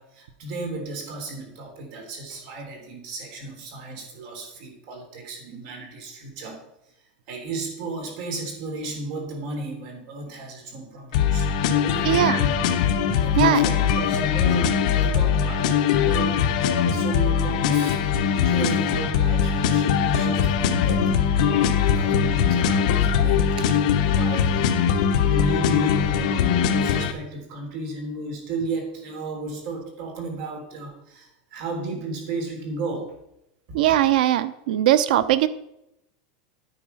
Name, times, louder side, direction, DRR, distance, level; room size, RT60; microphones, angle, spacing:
voice 1, 0.0-6.6 7.3-12.6 13.1-18.0 18.3-21.1 21.5-33.1 33.7-34.0, right 2 dB, 45° right, 3 dB, 3.4 m, -34 dB
sound 1, 11.1-27.1, left 7 dB, 55° left, 1.1 m, -21 dB
voice 2, 12.1-12.4 13.4-13.6 33.7-35.5, right 12 dB, 70° right, 14 dB, 0.8 m, -20 dB
9.9 x 8.4 x 5.7 m, 0.82 s
supercardioid pair, 180°, 5 cm